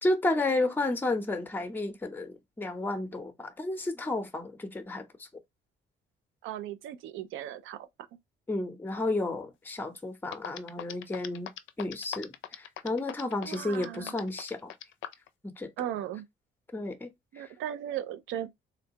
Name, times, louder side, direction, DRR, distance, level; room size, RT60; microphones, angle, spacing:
voice 1, 0.0-5.1 8.5-11.5 11.8-14.7 15.4-15.7 16.7-17.1 17.4-17.5, left 2 dB, 10° left, 0.6 m, -32 dB
voice 2, 6.4-7.9 13.4-14.2 15.8-16.3 17.3-18.5, right 11 dB, 90° right, 0.5 m, -37 dB
sound 1, 10.0-10.1 10.3-15.3, left 12 dB, 75° left, 0.4 m, -40 dB
3.8 x 2.2 x 2.7 m
cardioid pair, 90°, 20 cm